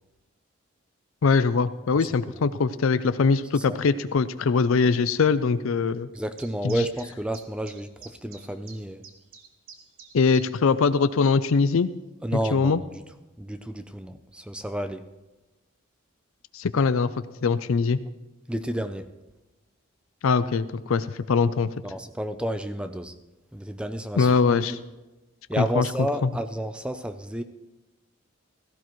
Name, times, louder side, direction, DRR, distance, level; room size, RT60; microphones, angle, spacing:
voice 1, 1.2-6.1 6.6-6.8 10.1-11.9 12.5-12.8 16.5-17.1 17.4-18.0 20.2-21.7 24.2-24.8 25.6-25.9 26.2-26.3, left 5 dB, 80° left, 13 dB, 0.4 m, -22 dB
voice 2, 1.9-2.4 3.5-3.8 6.1-9.0 12.2-13.0 13.4-15.1 18.5-19.1 21.8-23.2 23.5-24.8 25.5-27.4, right 1 dB, 5° right, 9 dB, 0.5 m, -31 dB
sound 1, 6.1-10.7 11.0-11.1 11.7-11.8, right 6 dB, 75° right, 1.6 m, -48 dB
16.5 x 14.5 x 3.1 m, 1.1 s
head